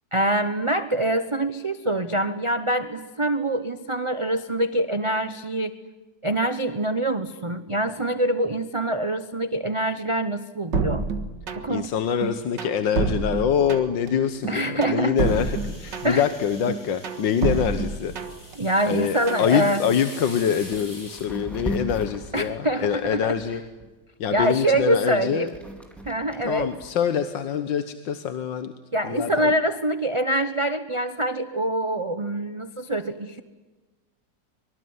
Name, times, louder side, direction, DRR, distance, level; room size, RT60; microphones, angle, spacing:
voice 1, 0.1-5.7 6.2-11.0 11.6-11.9 14.5-15.2 16.0-16.2 18.6-19.8 22.3-23.3 24.3-25.5 26.0-26.7 28.9-33.4, right 1 dB, 25° right, 10 dB, 0.8 m, -25 dB
sound 1, 10.7-11.9 12.2-14.1 14.4-16.3 16.7-18.5 18.9-19.5, right 4 dB, 75° right, 2.3 m, -28 dB
voice 2, 11.7-18.1 18.9-23.6 24.2-25.5 26.4-28.7 29.0-29.5, left 8 dB, 85° left, 10 dB, 1.8 m, -25 dB
sound 2, 15.2-21.3, left 2 dB, 45° left, 5.4 m, -44 dB
sound 3, 20.7-20.9 21.2-23.9 24.4-26.9, equal, ahead, 4.0 m, -36 dB
25.0 x 24.5 x 9.6 m, 1.2 s
omnidirectional pair, 1.9 m